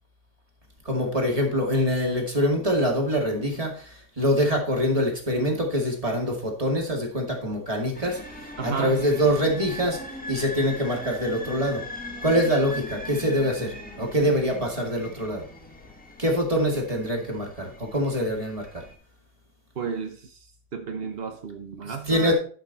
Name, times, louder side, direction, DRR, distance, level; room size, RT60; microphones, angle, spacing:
voice 1, 0.9-3.7 4.2-8.2 8.6-10.0 10.3-11.8 12.2-15.4 16.2-18.8 21.8-22.3, equal, 15° right, 0 dB, 2.0 m, -24 dB
sound 1, 7.9-18.9, left 1 dB, 5° left, 1.0 m, -40 dB
voice 2, 8.6-9.1 19.8-20.4 20.7-22.3, right 6 dB, 70° right, 5 dB, 0.5 m, -32 dB
11.5 x 5.8 x 4.1 m, 0.43 s
omnidirectional pair, 2.4 m